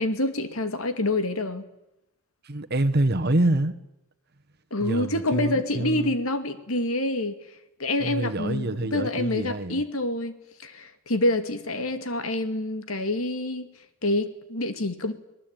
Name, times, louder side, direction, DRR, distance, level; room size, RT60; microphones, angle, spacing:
voice 1, 0.0-1.6 4.7-7.4 7.8-10.4 10.6-13.7 14.0-15.1, left 1 dB, 85° left, 9 dB, 2.4 m, -27 dB
voice 2, 2.4-3.7 4.8-6.2 8.0-9.8, right 1 dB, 50° right, 9 dB, 1.4 m, -26 dB
26.0 x 19.5 x 9.1 m, 0.88 s
head